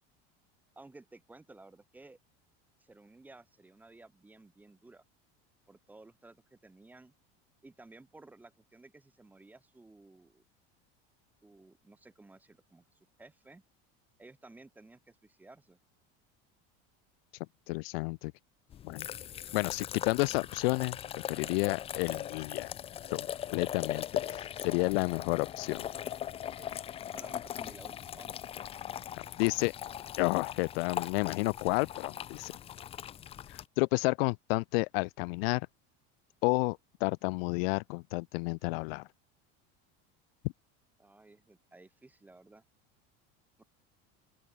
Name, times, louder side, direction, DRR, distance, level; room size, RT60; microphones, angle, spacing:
voice 1, 0.8-2.2 2.8-5.0 5.7-7.1 7.6-10.4 11.4-13.6 14.2-15.8 21.3-21.5 26.4-26.7 27.1-28.4 41.0-42.6 43.6-43.7, right 2 dB, 5° right, 1.0 m, -55 dB
voice 2, 17.7-18.3 18.8-19.1 19.5-21.0 21.3-22.7 23.1-23.3 23.5-25.8 29.1-29.7 30.2-32.6 33.5-35.7 36.4-39.1, left 27 dB, 85° left, 0.5 m, -31 dB
sound 1, 18.7-33.7, left 10 dB, 20° left, 0.7 m, -40 dB
open air
cardioid pair, 180°, 29 cm